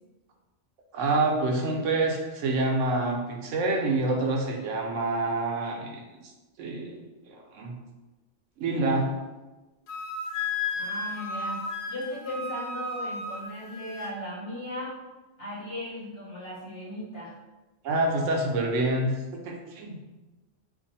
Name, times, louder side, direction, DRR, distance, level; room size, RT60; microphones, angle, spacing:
voice 1, 0.9-6.0 6.6-7.0 7.3-7.8 8.6-9.1 17.8-20.1, right 2 dB, 75° right, 1 dB, 1.0 m, -27 dB
Wind instrument woodwind instrument, 9.9-14.2, left 3 dB, 90° left, 1.0 m, -33 dB
voice 2, 10.8-15.0 15.4-17.3, left 1 dB, 50° left, -6 dB, 1.1 m, -37 dB
2.6 x 2.5 x 4.0 m, 1.1 s
omnidirectional pair, 1.3 m